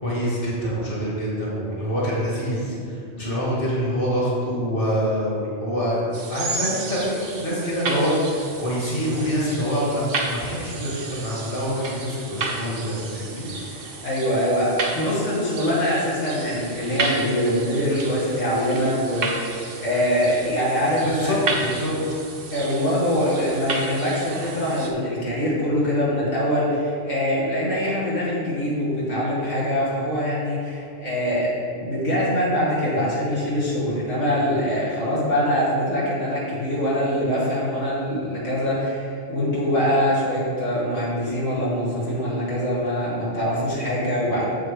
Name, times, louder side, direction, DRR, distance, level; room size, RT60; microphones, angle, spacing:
voice 1, 0.0-6.0 6.3-13.5 21.0-21.9, equal, 45° left, -7 dB, 2.4 m, -25 dB
sound 1, 6.1-24.9, right 3 dB, 85° right, 1.3 m, -32 dB
voice 2, 13.7-21.4 22.5-44.4, equal, 85° left, -8 dB, 2.2 m, -23 dB
8.1 x 7.5 x 3.7 m, 2.6 s
omnidirectional pair, 1.3 m